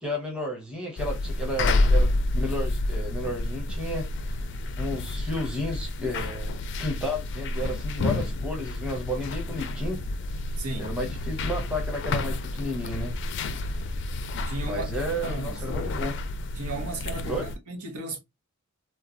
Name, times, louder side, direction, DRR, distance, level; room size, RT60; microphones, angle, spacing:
voice 1, 0.0-4.1 4.8-10.0 10.8-13.1 14.6-16.2 17.2-17.5, equal, 5° right, 0.8 m, -32 dB
sound 1, 1.0-17.6, left 2 dB, 50° left, 0.3 m, -29 dB
voice 2, 10.6-10.9 14.3-15.6 16.5-18.2, right 2 dB, 85° right, 0.9 m, -35 dB
3.1 x 2.2 x 2.5 m
head